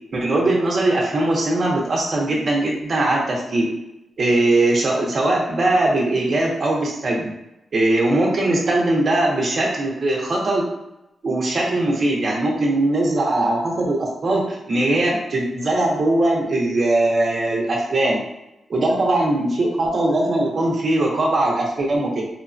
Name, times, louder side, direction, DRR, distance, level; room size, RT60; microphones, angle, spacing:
voice 1, 0.1-3.7 4.2-7.3 7.7-10.7 11.2-18.2 18.7-22.2, right 2 dB, 45° right, -2 dB, 0.6 m, -20 dB
3.1 x 2.1 x 2.5 m, 0.90 s
wide cardioid pair, 155°, 0 cm